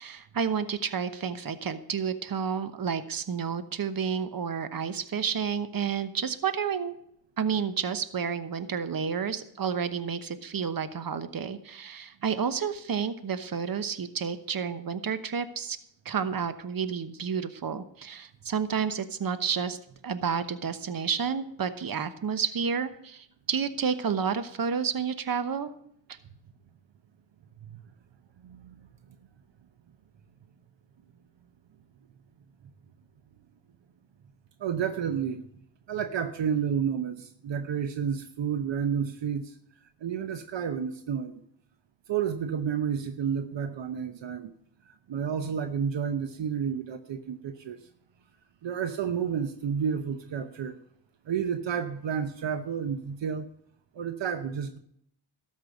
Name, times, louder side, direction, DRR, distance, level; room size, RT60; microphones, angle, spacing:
voice 1, 0.0-6.9 7.4-15.8 16.0-19.8 20.0-25.7 26.1-26.2, right 6 dB, 50° right, 12 dB, 1.1 m, -30 dB
voice 2, 28.4-28.9 34.6-35.5 35.9-39.6 40.0-41.4 42.1-44.5 44.8-47.8 48.6-50.8 51.3-53.5 53.9-54.8, right 7 dB, 70° right, 9 dB, 0.9 m, -31 dB
13.0 x 5.5 x 7.6 m, 0.72 s
cardioid pair, 70°, 46 cm